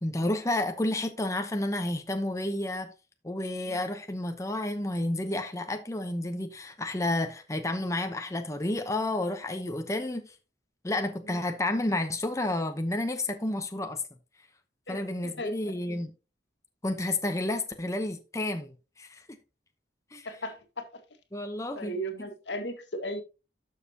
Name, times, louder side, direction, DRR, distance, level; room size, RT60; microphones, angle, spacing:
voice 1, 0.0-2.9 3.2-10.3 10.8-14.0 14.9-16.1 16.8-19.2 20.1-20.3 21.3-21.9 22.2-22.3, left 1 dB, 20° left, 0.9 m, -31 dB
voice 2, 14.9-15.5 20.3-20.9 21.8-23.2, equal, 80° left, 1.8 m, -36 dB
12.0 x 6.6 x 2.9 m
head